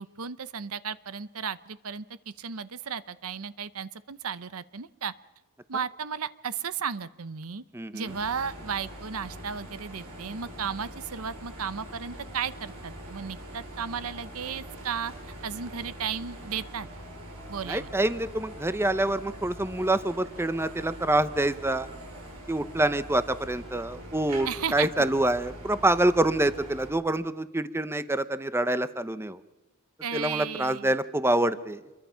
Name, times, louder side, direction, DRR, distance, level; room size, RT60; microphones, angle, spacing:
voice 1, 0.0-2.0 2.4-5.1 5.7-7.6 7.9-15.1 15.4-16.9 17.5-17.9 24.5-24.9 30.0-31.0, right 6 dB, 65° right, 15 dB, 0.8 m, -34 dB
voice 2, 7.7-8.1 17.7-21.9 22.5-29.4 30.1-31.8, right 1 dB, 10° right, 13 dB, 0.7 m, -26 dB
sound 1, 8.1-26.9, right 1 dB, 85° right, 6.3 m, -43 dB
27.5 x 22.5 x 5.7 m, 1.1 s
head